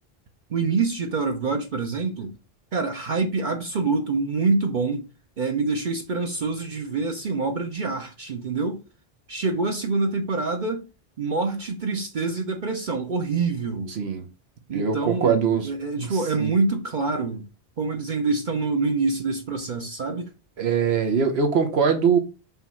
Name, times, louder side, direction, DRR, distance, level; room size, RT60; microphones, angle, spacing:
voice 1, 0.5-2.3 2.7-5.0 5.4-8.8 9.3-10.8 11.2-13.9 14.7-17.5 17.8-20.3, right 4 dB, 55° right, 0.9 m, -26 dB
voice 2, 13.9-14.2 14.7-15.7 16.0-16.5 20.6-22.2, right 6 dB, 85° right, 1.3 m, -22 dB
5.5 x 3.1 x 5.6 m
omnidirectional pair, 1.0 m